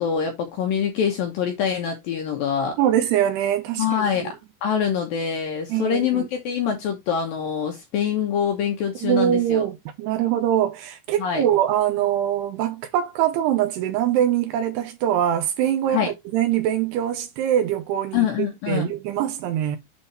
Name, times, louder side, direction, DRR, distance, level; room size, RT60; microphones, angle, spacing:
voice 1, 0.0-2.8 3.8-4.4 4.6-9.6 11.2-11.4 15.9-16.1 18.1-18.9, left 8 dB, 75° left, 2.2 m, -24 dB
voice 2, 2.8-4.3 5.7-6.3 9.0-19.8, right 11 dB, 75° right, 2.6 m, -23 dB
8.2 x 3.7 x 4.1 m
omnidirectional pair, 5.3 m